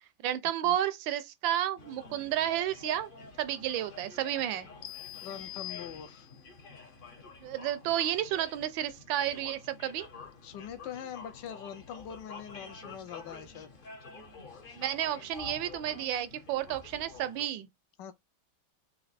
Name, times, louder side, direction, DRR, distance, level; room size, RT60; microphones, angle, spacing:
voice 1, 0.2-3.1 3.4-4.7 7.4-10.1 14.8-17.7, right 12 dB, 75° right, 1.3 m, -31 dB
sound 1, 1.8-17.5, left 4 dB, 45° left, 0.7 m, -49 dB
sound 2, 4.8-6.5, left 15 dB, 90° left, 1.7 m, -44 dB
voice 2, 5.2-6.3 10.4-13.7 18.0-18.1, left 9 dB, 70° left, 1.2 m, -43 dB
4.2 x 2.8 x 4.0 m
omnidirectional pair, 2.2 m